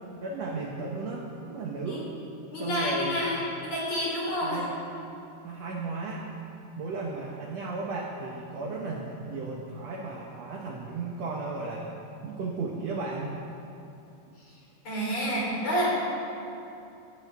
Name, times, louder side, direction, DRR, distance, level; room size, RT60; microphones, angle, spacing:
voice 1, 0.2-2.1 2.5-3.5 4.4-4.7 5.4-6.3 6.8-11.9 12.2-13.4, right 3 dB, 70° right, -1 dB, 1.6 m, -35 dB
voice 2, 2.5-3.4 3.6-4.6 14.8-15.9, equal, 45° left, -6 dB, 4.8 m, -28 dB
16.0 x 15.0 x 3.6 m, 2.8 s
omnidirectional pair, 4.3 m